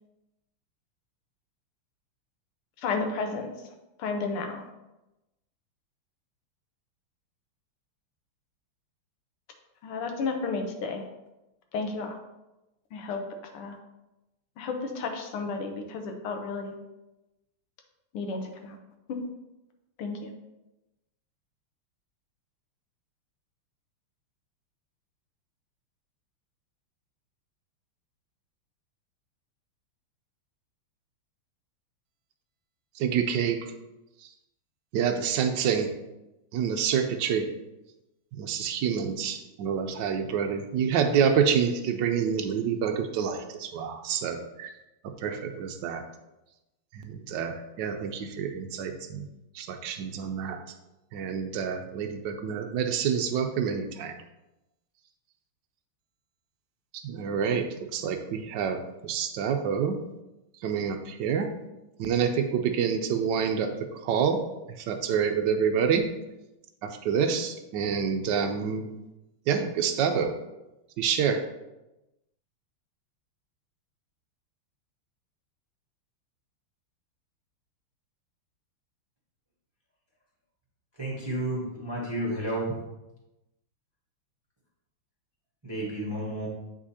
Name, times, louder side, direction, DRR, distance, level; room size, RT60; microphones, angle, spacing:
voice 1, 2.8-3.5 4.0-4.6 9.8-11.0 11.7-12.2 12.9-13.2 13.5-13.8 14.6-16.7 18.1-18.8 19.1-19.2 20.0-20.3, left 4 dB, 85° left, 4 dB, 1.8 m, -32 dB
voice 2, 33.0-33.7 34.9-35.9 36.5-37.5 38.3-44.7 45.0-46.0 46.9-49.3 49.5-50.6 51.1-54.1 57.0-60.0 60.6-61.5 62.0-64.4 64.8-66.1 66.8-68.9 69.5-70.3 71.0-71.4, right 7 dB, 75° right, 6 dB, 1.1 m, -27 dB
voice 3, 81.0-82.8 85.6-86.5, right 1 dB, 15° right, -5 dB, 0.9 m, -31 dB
8.2 x 4.9 x 2.8 m, 0.97 s
omnidirectional pair, 2.4 m